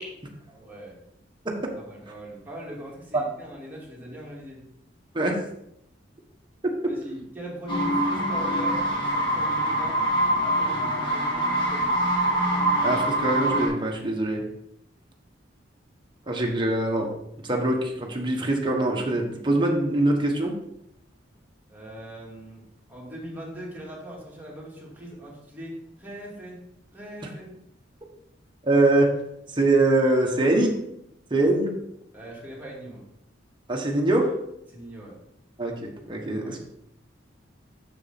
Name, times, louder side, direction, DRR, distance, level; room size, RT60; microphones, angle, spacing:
voice 1, 0.5-1.0 1.9-4.6 6.9-10.0 10.4-12.0 21.7-26.6 26.9-27.6 32.1-33.0 34.7-35.2 36.4-36.6, right 1 dB, 10° right, -4 dB, 2.5 m, -40 dB
sound 1, 7.7-13.7, right 1 dB, 25° left, 2.0 m, -24 dB
voice 2, 12.8-14.4 16.3-17.1 17.4-20.5 28.6-29.1 29.6-30.7 31.3-31.7 33.7-34.3 35.6-36.6, right 2 dB, 25° right, 0 dB, 1.4 m, -23 dB
6.9 x 6.6 x 4.3 m, 0.77 s
head